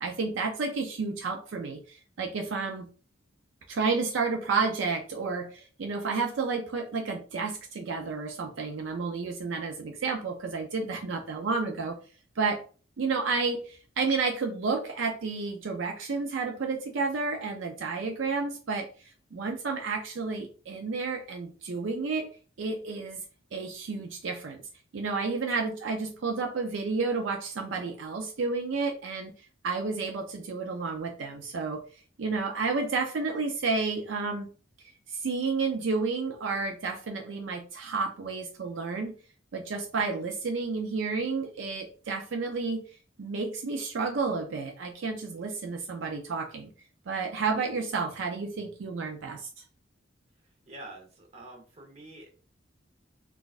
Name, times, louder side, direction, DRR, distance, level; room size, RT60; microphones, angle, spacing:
voice 1, 0.0-2.9 3.7-12.0 12.4-12.6 13.0-18.9 19.3-22.3 22.6-23.2 23.5-24.6 24.9-29.3 29.6-31.9 32.2-34.5 35.1-39.1 39.5-42.8 43.2-46.7 47.1-49.5, right 4 dB, 70° right, 3 dB, 0.4 m, -31 dB
voice 2, 50.7-52.3, right 2 dB, 35° right, 0 dB, 0.9 m, -46 dB
3.9 x 2.4 x 2.4 m, 0.38 s
head